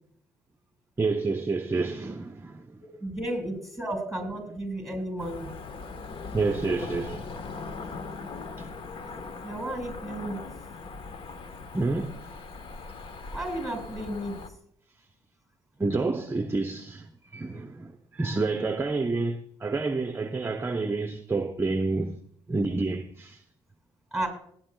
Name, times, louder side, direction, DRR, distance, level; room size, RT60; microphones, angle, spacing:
voice 1, 1.0-2.8 6.3-7.4 8.6-8.7 11.7-12.3 15.8-22.2 22.5-23.4, right 3 dB, 20° right, 0.7 m, -29 dB
voice 2, 3.0-5.6 9.1-10.4 13.3-14.4 24.1-24.3, right 1 dB, ahead, 5.2 m, -33 dB
Cricket / Motor vehicle (road), 5.2-14.5, left 4 dB, 50° left, 1.1 m, -40 dB
19.0 x 9.5 x 2.3 m
supercardioid pair, 65°, 11 cm